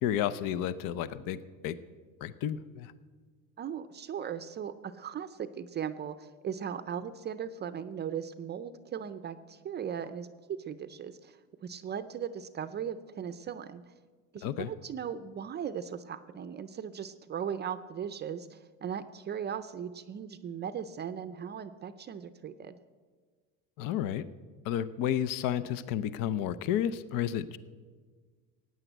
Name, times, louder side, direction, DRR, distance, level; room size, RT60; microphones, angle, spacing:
voice 1, 0.0-1.8 2.2-2.9 14.4-14.7 23.8-24.2 24.6-27.6, left 10 dB, 65° left, 15 dB, 0.7 m, -31 dB
voice 2, 3.6-13.8 14.3-22.8, right 8 dB, 30° right, 11 dB, 0.5 m, -38 dB
16.0 x 9.5 x 7.9 m, 1.5 s
cardioid pair, 140°, 36 cm